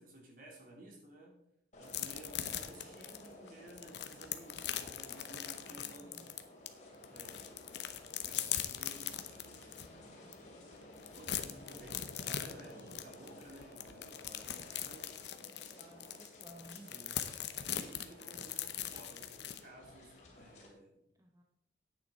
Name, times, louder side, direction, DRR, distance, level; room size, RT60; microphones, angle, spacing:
voice 1, 0.0-1.3 1.8-6.4 7.1-7.7 8.2-9.7 11.1-15.2 16.9-17.2 17.7-21.0, right 1 dB, 45° right, -1 dB, 3.1 m, -55 dB
sound 1, 1.7-20.7, left 1 dB, 40° left, 2.6 m, -55 dB
sound 2, 1.9-6.7 7.0-9.9 10.3-10.4 10.7-19.6, left 10 dB, 60° left, 0.8 m, -40 dB
voice 2, 5.8-6.3 12.7-13.0 15.7-16.9 21.2-21.4, right 1 dB, 15° right, 2 dB, 0.8 m, -56 dB
10.0 x 8.9 x 4.3 m, 0.78 s
head